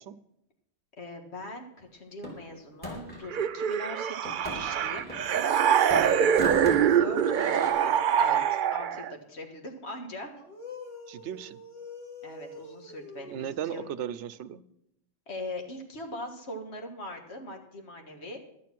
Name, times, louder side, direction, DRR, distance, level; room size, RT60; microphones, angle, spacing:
voice 1, 1.0-5.1 6.0-10.3 12.2-13.9 15.3-18.4, left 1 dB, 70° left, 3 dB, 1.9 m, -41 dB
sound 1, 2.2-3.3 4.3-5.6 5.9-7.7, left 1 dB, 10° left, 3.5 m, -40 dB
sound 2, 3.3-9.1, right 9 dB, 60° right, 0.6 m, -24 dB
sound 3, 5.3-9.0 10.3-14.0, left 2 dB, 30° left, 2.0 m, -43 dB
voice 2, 11.1-11.6 13.3-14.6, right 9 dB, 90° right, 16 dB, 0.9 m, -36 dB
11.5 x 9.4 x 5.9 m, 0.79 s
omnidirectional pair, 1.1 m